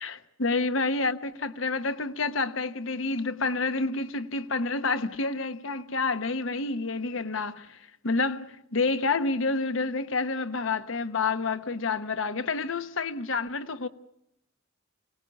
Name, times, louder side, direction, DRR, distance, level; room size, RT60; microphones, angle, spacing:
voice 1, 0.0-7.8 8.0-13.9, left 3 dB, 80° left, 1.0 m, -29 dB
25.5 x 19.0 x 8.2 m
head